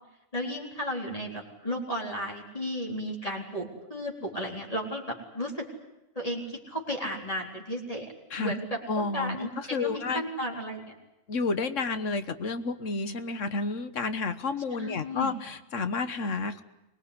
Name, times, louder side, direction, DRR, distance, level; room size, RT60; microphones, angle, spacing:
voice 1, 0.3-5.7 6.2-8.1 8.4-10.9 14.8-15.3, equal, 30° left, -1 dB, 4.1 m, -34 dB
voice 2, 8.9-10.2 11.3-16.6, left 4 dB, 85° left, 11 dB, 1.6 m, -31 dB
24.5 x 20.0 x 9.8 m, 0.95 s
omnidirectional pair, 1.3 m